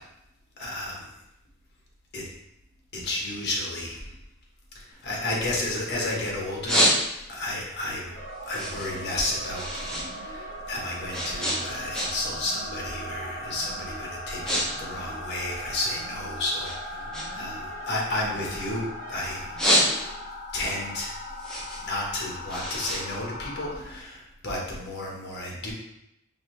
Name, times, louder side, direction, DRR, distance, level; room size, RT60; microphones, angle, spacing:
voice 1, 0.6-1.1 2.1-2.2 2.9-4.0 4.7-8.1 8.5-9.7 9.9-19.7 20.5-21.2 21.8-25.7, left 2 dB, 55° left, -2 dB, 1.1 m, -32 dB
sound 1, 4.9-6.0 6.4-7.5 7.9-10.1 10.4-12.4 12.7-13.0 13.6-13.8 14.1-14.7 14.9-16.2 16.6-18.9 19.3-20.4 20.8-23.9, equal, 5° left, 0.8 m, -28 dB
sound 2, 7.9-20.2, right 2 dB, 85° right, 0.7 m, -46 dB
sound 3, 8.1-23.7, left 1 dB, 20° left, 1.5 m, -39 dB
5.1 x 2.7 x 3.1 m, 0.84 s
head